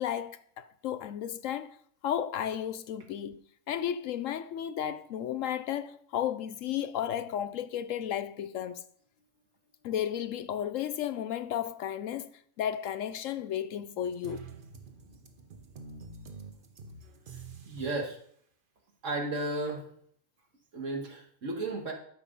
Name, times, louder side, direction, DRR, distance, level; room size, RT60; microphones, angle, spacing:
voice 1, 0.0-1.8 2.0-8.8 9.8-14.4, left 10 dB, 70° left, 0.9 m, -33 dB
sound 1, 14.0-18.1, right 4 dB, 40° right, 1.0 m, -47 dB
voice 2, 17.6-18.2 19.0-19.8 20.7-21.9, right 2 dB, 60° right, 2.2 m, -33 dB
13.0 x 6.2 x 5.4 m
omnidirectional pair, 1.5 m